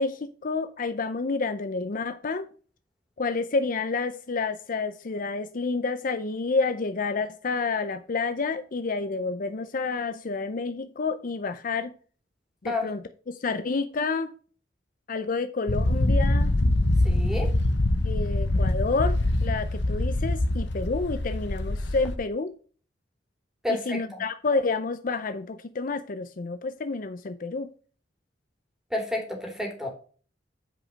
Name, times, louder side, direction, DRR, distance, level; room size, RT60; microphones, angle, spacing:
voice 1, 0.0-2.5 3.2-11.9 12.6-13.0 13.3-14.3 15.1-16.5 18.0-22.5 23.7-27.7, left 4 dB, 50° left, 0.5 m, -29 dB
sound 1, 15.7-22.2, left 1 dB, 70° left, 1.1 m, -24 dB
voice 2, 17.0-17.5 23.6-24.2 28.9-29.9, left 2 dB, 5° right, 2.8 m, -30 dB
8.9 x 5.1 x 5.2 m
head